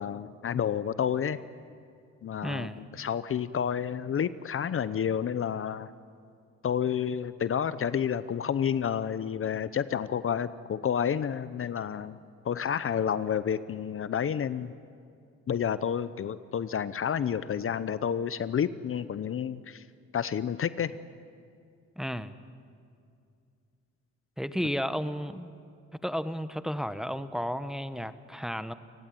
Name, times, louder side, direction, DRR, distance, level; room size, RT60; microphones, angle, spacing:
voice 1, 0.0-1.4 2.2-5.9 6.6-12.2 12.4-14.7 15.5-19.8 20.1-21.0, left 8 dB, 45° left, 15 dB, 0.8 m, -30 dB
voice 2, 2.4-2.8 22.0-22.4 24.4-25.5 26.0-28.7, equal, ahead, 12 dB, 1.0 m, -33 dB
29.5 x 16.5 x 9.4 m, 2.4 s
cardioid pair, 90°, 30 cm